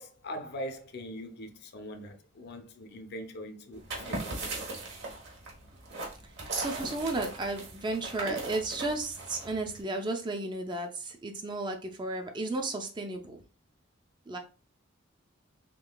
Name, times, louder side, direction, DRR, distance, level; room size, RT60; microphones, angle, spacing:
voice 1, 0.0-4.7, equal, 50° left, 0.5 m, -42 dB
sound 1, 3.7-9.8, right 2 dB, 55° right, 1.1 m, -38 dB
voice 2, 6.5-13.4 14.3-14.4, right 2 dB, 20° right, 0.4 m, -33 dB
3.7 x 3.2 x 2.2 m
head